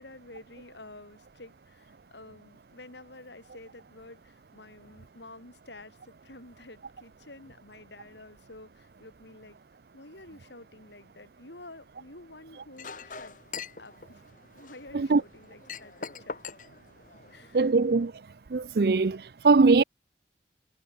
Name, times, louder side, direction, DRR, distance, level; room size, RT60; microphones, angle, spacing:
voice 1, 0.0-9.6 9.9-13.4 13.8-14.2 14.5-16.6 17.3-17.7, left 2 dB, 80° left, 6.6 m, -50 dB
Chink clink, 12.8-17.7, left 5 dB, 45° left, 1.6 m, -43 dB
voice 2, 17.5-18.1 18.5-19.8, right 4 dB, 60° right, 0.5 m, -21 dB
head